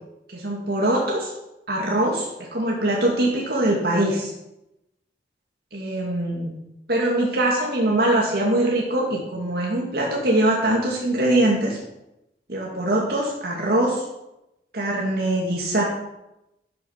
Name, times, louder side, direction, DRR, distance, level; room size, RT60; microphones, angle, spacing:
voice 1, 0.3-1.3 1.7-4.3 5.7-6.5 6.9-11.8 12.5-14.0 14.7-15.8, right 1 dB, 60° right, -2 dB, 2.4 m, -22 dB
12.5 x 7.6 x 5.9 m, 0.90 s
head